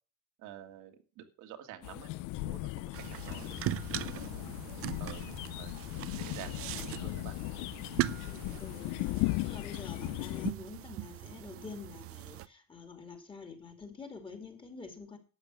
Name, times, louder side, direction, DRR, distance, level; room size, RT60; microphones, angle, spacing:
voice 1, 0.4-3.8 4.1-4.2 5.0-5.3 5.6-5.7 6.2-7.3, right 11 dB, 75° right, 5 dB, 2.1 m, -49 dB
sound 1, 1.8-10.5, left 21 dB, 85° left, 0.5 m, -37 dB
sound 2, 2.9-12.5, right 14 dB, 50° right, 0.6 m, -40 dB
voice 2, 8.1-15.2, left 4 dB, 15° left, 6 dB, 2.6 m, -47 dB
12.0 x 8.3 x 6.0 m, 0.35 s
cardioid pair, 160°, 31 cm